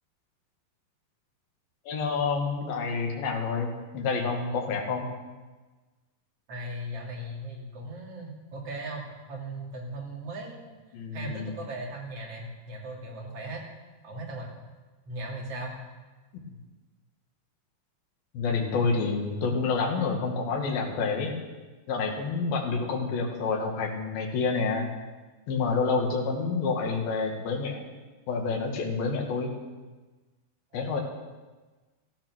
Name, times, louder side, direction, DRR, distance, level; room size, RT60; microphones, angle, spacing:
voice 1, 1.9-5.1 10.9-11.6 16.3-16.4 18.3-21.3 21.9-24.9 25.5-27.8 28.3-29.5 30.7-31.0, left 4 dB, 80° left, 0 dB, 3.7 m, -28 dB
voice 2, 6.5-10.7 11.1-13.6 14.0-14.5 15.1-15.8 30.7-30.8, right 1 dB, 45° right, -2 dB, 3.4 m, -38 dB
14.5 x 13.5 x 6.3 m, 1.3 s
omnidirectional pair, 4.1 m